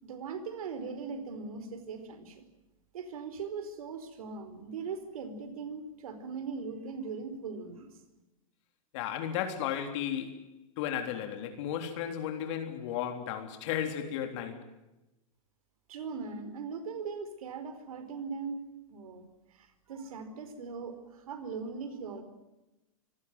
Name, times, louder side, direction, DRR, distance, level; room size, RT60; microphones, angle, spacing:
voice 1, 0.0-2.4 2.9-7.9 15.9-18.6 18.9-19.3 19.5-22.2, right 5 dB, 85° right, 4.7 m, -40 dB
voice 2, 8.9-10.5 10.8-14.7, left 9 dB, 55° left, 3.5 m, -34 dB
25.5 x 17.0 x 9.5 m
supercardioid pair, 140°, 18 cm